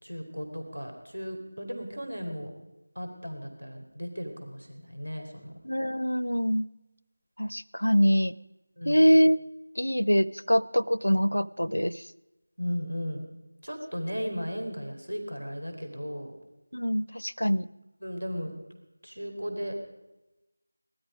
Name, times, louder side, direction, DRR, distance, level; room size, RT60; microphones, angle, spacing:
voice 1, 0.0-2.5 3.0-5.5 8.8-9.1 12.6-13.2 13.6-16.3 17.4-17.5 18.0-18.5 19.0-19.8, equal, 75° right, 4 dB, 4.1 m, -36 dB
voice 2, 5.6-6.7 7.4-8.4 8.9-9.4 9.8-12.0 16.7-17.7, equal, 80° left, 19 dB, 0.6 m, -24 dB
19.5 x 13.0 x 5.1 m, 1.0 s
figure-of-eight pair, 170°, 0 cm